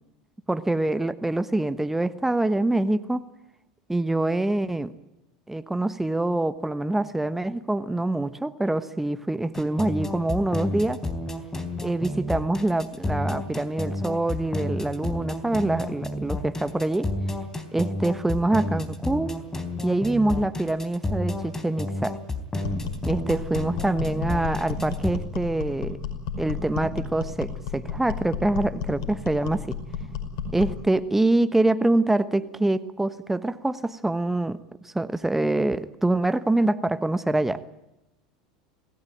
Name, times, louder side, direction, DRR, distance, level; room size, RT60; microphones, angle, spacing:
voice 1, 0.5-3.2 3.9-4.9 5.5-11.0 11.8-17.1 17.7-19.4 19.8-22.2 23.0-26.0 26.4-29.8 30.5-34.6 34.8-37.6, right 2 dB, 10° right, 13 dB, 1.1 m, -25 dB
sound 1, 9.5-25.1, left 2 dB, 15° left, 3.7 m, -30 dB
sound 2, 22.6-30.8, left 6 dB, 65° left, 5.2 m, -33 dB
26.0 x 17.5 x 9.2 m, 0.92 s
hypercardioid pair, 85°, 3 cm